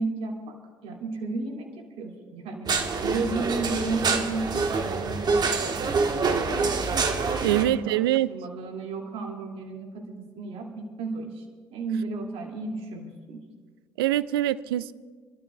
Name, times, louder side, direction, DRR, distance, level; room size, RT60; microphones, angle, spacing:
voice 1, 0.0-6.9 7.4-8.0 8.3-11.4 11.7-13.4, right 3 dB, 55° right, 1 dB, 2.5 m, -33 dB
sound 1, 2.7-7.6, right 4 dB, 35° right, 1.4 m, -26 dB
voice 2, 7.4-8.3 14.0-14.9, right 14 dB, 75° right, 18 dB, 0.4 m, -24 dB
27.5 x 12.5 x 2.4 m, 1.5 s
hypercardioid pair, 60°, 12 cm